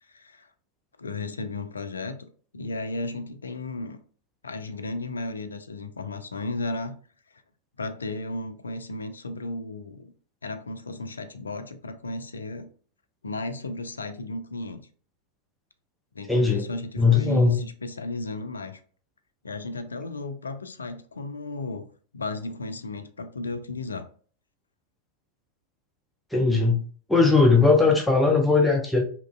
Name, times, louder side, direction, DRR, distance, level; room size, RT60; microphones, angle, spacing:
voice 1, 0.1-0.5 1.0-4.0 4.4-7.0 7.8-10.1 10.4-12.7 13.2-14.8 16.1-18.8 19.4-21.9 22.1-24.1, left 2 dB, 75° left, 0.3 m, -34 dB
voice 2, 16.3-16.7 17.0-17.6 26.3-26.8 27.1-29.0, left 4 dB, 5° left, 0.5 m, -19 dB
2.9 x 2.4 x 2.3 m
figure-of-eight pair, 90°, 0 cm